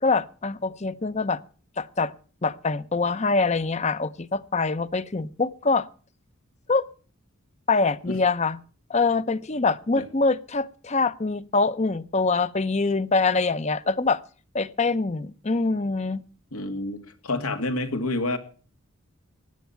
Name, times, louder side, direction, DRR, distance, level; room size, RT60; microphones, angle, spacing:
voice 1, 0.0-1.4 1.8-2.1 2.4-5.9 6.7-6.9 7.7-8.6 8.9-14.2 14.5-16.2, left 3 dB, 30° left, 0.6 m, -24 dB
voice 2, 16.5-18.4, left 2 dB, 85° left, 2.3 m, -28 dB
16.5 x 10.5 x 5.7 m
head